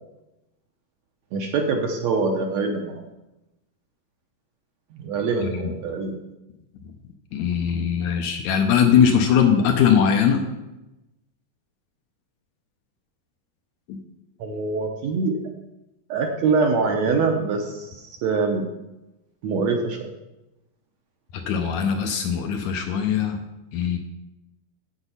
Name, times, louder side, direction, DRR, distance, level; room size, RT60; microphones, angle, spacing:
voice 1, 1.3-3.0 5.0-6.2 14.4-15.4 16.1-18.7 19.4-20.1, right 4 dB, 70° right, 3 dB, 1.7 m, -24 dB
voice 2, 5.4-5.7 7.3-10.5 13.9-14.0 21.3-23.4 23.7-24.0, left 7 dB, 75° left, 5 dB, 1.9 m, -20 dB
8.1 x 8.0 x 5.5 m, 0.98 s
omnidirectional pair, 3.9 m